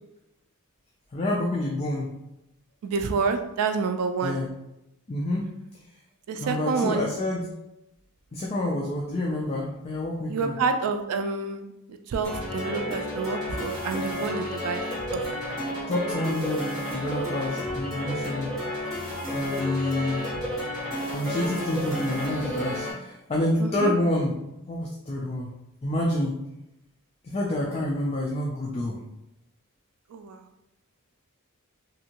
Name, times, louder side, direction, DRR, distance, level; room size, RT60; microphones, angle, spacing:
voice 1, 1.1-2.1 4.2-4.5 5.1-5.5 6.3-7.4 8.3-10.6 15.9-16.7 16.9-18.9 19.3-20.3 21.1-24.4 24.7-25.5 25.8-26.3 27.2-29.0, left 1 dB, 30° left, -2 dB, 0.3 m, -28 dB
voice 2, 2.8-4.4 6.3-7.1 10.3-14.8 15.1-15.2 23.6-23.9 30.1-30.4, right 4 dB, 85° right, 6 dB, 0.3 m, -28 dB
sound 1, 12.2-22.9, equal, ahead, 1.5 m, -31 dB
2.7 x 2.5 x 2.8 m, 0.89 s
head